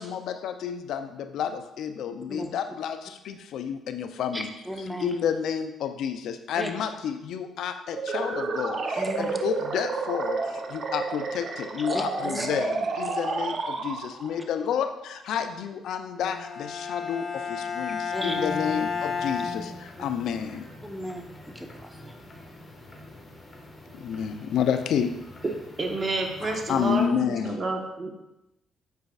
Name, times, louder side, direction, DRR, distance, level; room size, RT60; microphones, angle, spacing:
voice 1, 0.0-4.5 5.0-20.7 23.9-25.2 26.4-27.6, left 8 dB, 70° left, 9 dB, 0.5 m, -30 dB
voice 2, 4.3-5.1 6.6-6.7 9.0-9.4 11.9-12.5 18.1-18.5 20.8-21.2 21.5-22.1, equal, ahead, 4 dB, 0.9 m, -34 dB
sound 1, 7.9-14.4, right 4 dB, 55° right, 0.7 m, -30 dB
Bowed string instrument, 16.2-20.3, left 5 dB, 55° left, 0.9 m, -32 dB
sound 2, 18.1-27.1, left 1 dB, 40° left, 1.5 m, -47 dB
voice 3, 25.8-28.1, right 2 dB, 40° right, 3 dB, 1.2 m, -29 dB
8.0 x 5.1 x 2.4 m, 0.92 s
hypercardioid pair, 55°, 0 cm